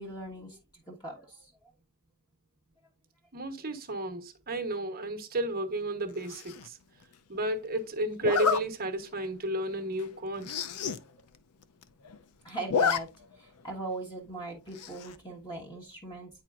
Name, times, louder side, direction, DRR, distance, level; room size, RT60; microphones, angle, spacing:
voice 1, 0.0-1.5 12.4-13.1 13.4-16.3, right 2 dB, 20° left, 1.5 m, -40 dB
voice 2, 3.3-6.8 7.3-10.5, right 1 dB, 45° right, 1.0 m, -32 dB
Zipper (clothing), 6.3-6.7 8.2-8.6 9.2-9.3 9.7-9.8 10.0-10.1 10.4-11.0 11.3-11.4 11.6-12.2 12.5-13.0 13.3-13.4 14.8-15.1, left 6 dB, 80° left, 0.5 m, -29 dB
9.3 x 4.4 x 2.4 m
head